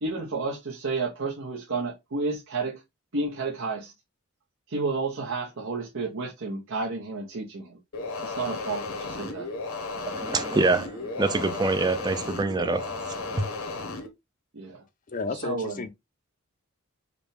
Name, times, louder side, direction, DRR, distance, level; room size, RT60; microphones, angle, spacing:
voice 1, 0.0-2.8 3.1-3.9 4.7-7.8 8.2-9.5 14.5-14.8 15.3-15.8, right 3 dB, 65° right, 0.9 m, -31 dB
sound 1, 7.9-14.1, left 3 dB, 75° left, 0.9 m, -34 dB
voice 2, 10.1-12.9 13.2-13.5, right 3 dB, 20° right, 0.5 m, -25 dB
voice 3, 15.1-15.9, left 4 dB, 40° left, 0.5 m, -32 dB
5.0 x 2.3 x 3.2 m
head